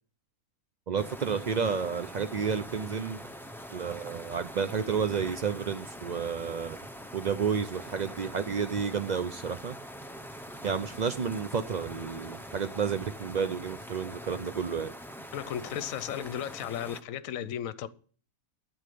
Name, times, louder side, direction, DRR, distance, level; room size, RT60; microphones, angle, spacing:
voice 1, 0.9-3.2 3.7-6.8 7.1-9.7 10.6-14.9, right 6 dB, 90° right, 0.3 m, -31 dB
sound 1, 1.0-17.0, equal, 5° left, 0.4 m, -44 dB
voice 2, 15.3-17.9, left 10 dB, 65° left, 1.1 m, -35 dB
9.8 x 8.8 x 6.8 m
omnidirectional pair, 1.6 m